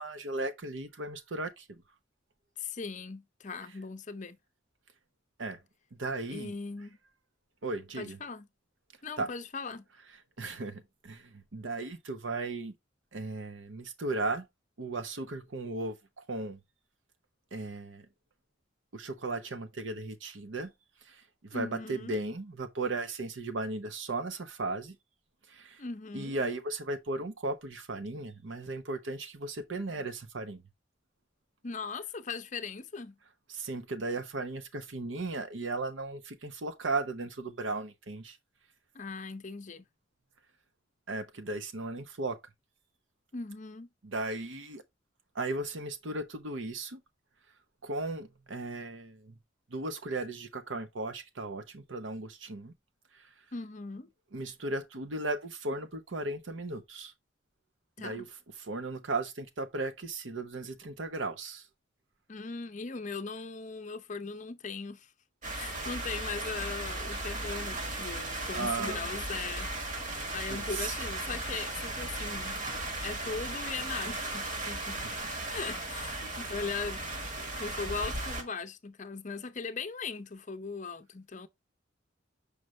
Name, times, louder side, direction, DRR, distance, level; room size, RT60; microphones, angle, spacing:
voice 1, 0.0-1.8 5.4-5.6 5.9-6.5 7.6-8.2 9.2-9.3 10.4-12.7 13.1-14.5 14.8-16.6 17.5-18.1 18.9-20.7 21.1-21.2 21.5-25.0 25.5-25.8 26.1-30.6 33.5-38.4 41.1-42.4 44.0-44.8 45.3-47.0 47.8-49.4 49.7-52.7 53.1-53.3 54.3-57.1 58.0-58.3 58.6-61.7 68.5-69.1 70.5-70.9, right 2 dB, 75° right, 0.9 m, -36 dB
voice 2, 2.6-4.4 6.3-7.0 7.9-8.5 9.0-9.8 21.5-22.2 25.8-26.3 31.6-33.2 38.9-39.8 43.3-43.9 53.5-54.1 58.0-58.3 62.3-65.1 65.5-69.7 70.3-72.6 73.0-75.0 75.5-77.0 77.4-81.5, left 4 dB, 40° left, 0.6 m, -39 dB
sound 1, 65.4-78.4, right 2 dB, 40° right, 1.5 m, -36 dB
6.5 x 5.0 x 3.1 m
head